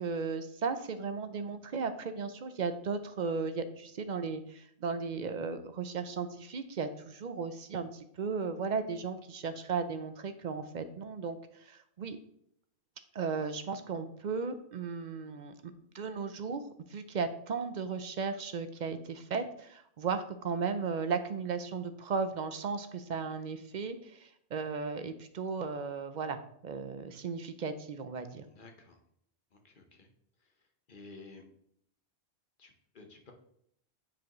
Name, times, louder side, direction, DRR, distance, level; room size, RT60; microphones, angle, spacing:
voice 1, 0.0-12.2 13.1-16.6 16.9-26.4 26.6-28.4, right 5 dB, 55° right, 10 dB, 0.5 m, -36 dB
voice 2, 28.5-29.0 29.6-30.1 30.9-31.4 32.6-33.3, left 3 dB, 50° left, 3 dB, 1.2 m, -52 dB
8.8 x 4.8 x 3.1 m, 0.69 s
omnidirectional pair, 1.2 m